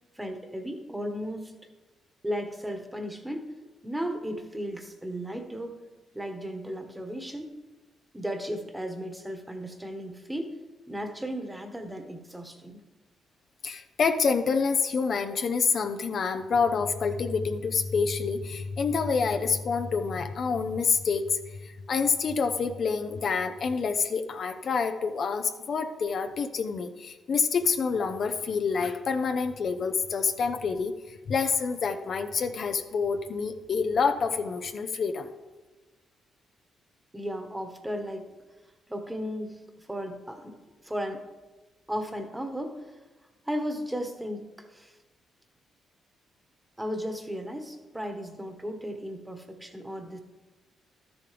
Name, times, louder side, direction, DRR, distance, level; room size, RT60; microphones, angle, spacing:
voice 1, 0.1-1.5 2.2-3.5 3.8-5.8 6.1-7.5 8.1-10.6 10.9-12.8 37.1-38.3 38.9-40.5 40.8-41.2 41.9-42.9 43.4-44.9 46.8-50.2, equal, 10° right, 6 dB, 1.4 m, -35 dB
voice 2, 13.6-35.3, left 5 dB, 60° left, 7 dB, 0.6 m, -27 dB
12.5 x 7.0 x 3.4 m, 1.2 s
supercardioid pair, 55°, 0 cm